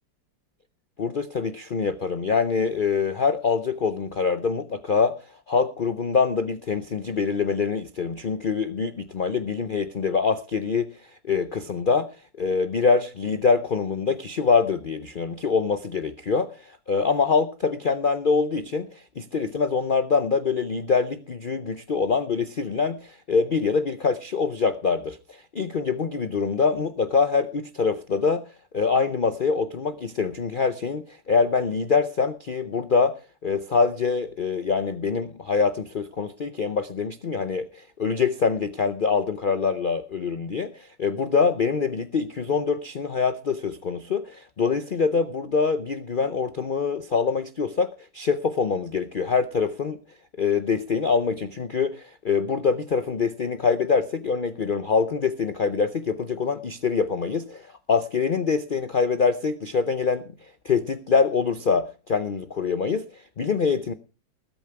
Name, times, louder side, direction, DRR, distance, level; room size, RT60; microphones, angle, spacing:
voice 1, 1.0-5.2 5.5-12.1 12.4-28.4 28.7-50.0 50.4-60.3 60.6-63.9, left 5 dB, 90° left, 0.4 m, -24 dB
20.0 x 8.7 x 4.7 m
omnidirectional pair, 2.0 m